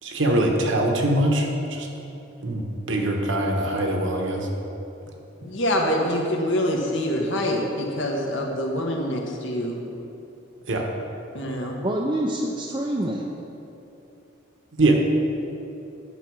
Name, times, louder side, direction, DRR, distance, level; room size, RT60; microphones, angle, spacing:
voice 1, 0.0-1.9 2.4-4.5 10.7-10.9 14.8-15.0, right 1 dB, 65° right, 2 dB, 1.2 m, -23 dB
voice 2, 5.4-9.8 11.3-11.8, equal, 65° left, 0 dB, 1.4 m, -25 dB
voice 3, 11.8-13.2, right 1 dB, 20° right, -1 dB, 0.5 m, -26 dB
10.0 x 5.9 x 6.3 m, 2.9 s
head